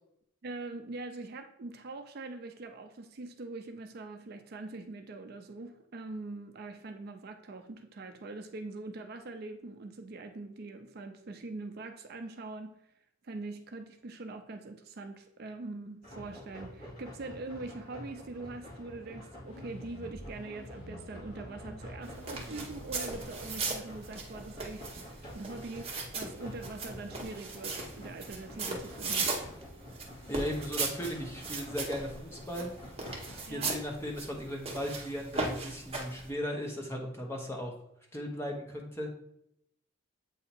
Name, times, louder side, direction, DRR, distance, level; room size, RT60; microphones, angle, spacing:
voice 1, 0.4-12.8 13.2-29.3 33.5-33.8, right 2 dB, 50° right, 6 dB, 0.4 m, -43 dB
sound 1, 16.0-33.4, left 1 dB, 45° left, 2.2 m, -48 dB
sound 2, 19.4-26.1, equal, 80° left, 1.7 m, -50 dB
sound 3, 22.0-36.3, right 3 dB, 30° right, 0.9 m, -38 dB
voice 2, 30.3-32.7 33.5-37.7 38.1-39.1, equal, 10° left, 0 dB, 0.9 m, -37 dB
7.9 x 2.8 x 4.3 m, 0.76 s
head